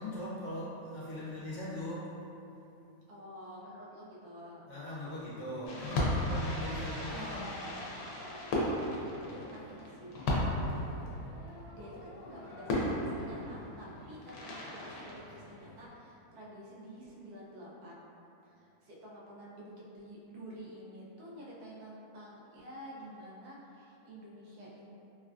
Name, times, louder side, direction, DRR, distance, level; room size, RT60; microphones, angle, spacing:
voice 1, 0.0-2.1 4.7-7.6, left 1 dB, 60° left, -9 dB, 0.9 m, -40 dB
voice 2, 3.1-4.7 9.2-10.2 10.6-10.9 11.7-18.1 18.4-24.9, equal, 90° right, -6 dB, 1.2 m, -49 dB
Fireworks, 5.7-15.9, left 1 dB, 85° left, 1.1 m, -36 dB
3.1 x 2.3 x 2.3 m, 2.8 s
omnidirectional pair, 1.6 m